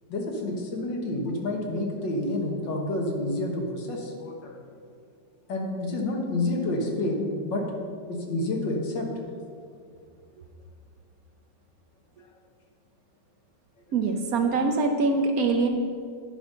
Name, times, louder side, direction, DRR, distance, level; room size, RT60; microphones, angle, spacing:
voice 1, 0.1-4.6 5.5-7.6 8.1-9.1, left 2 dB, 85° left, 0 dB, 2.0 m, -29 dB
voice 2, 13.9-15.7, right 3 dB, 65° right, 4 dB, 1.0 m, -23 dB
9.8 x 5.3 x 5.4 m, 2.2 s
omnidirectional pair, 1.9 m